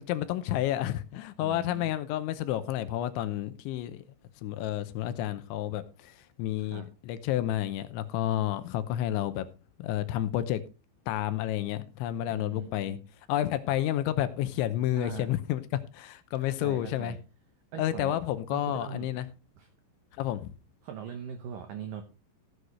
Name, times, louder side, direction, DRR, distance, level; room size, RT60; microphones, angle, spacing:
voice 1, 0.0-4.0 4.4-9.5 9.8-10.6 11.1-13.0 13.3-17.2 17.8-19.3 20.2-20.5, left 12 dB, 80° left, 3.1 m, -30 dB
voice 2, 1.4-1.9 6.6-6.9 12.3-13.0 14.9-15.3 16.4-17.2 17.7-18.2 18.5-19.1 19.6-19.7 20.8-22.0, right 8 dB, 90° right, 1.9 m, -41 dB
15.5 x 7.9 x 3.2 m
omnidirectional pair, 5.4 m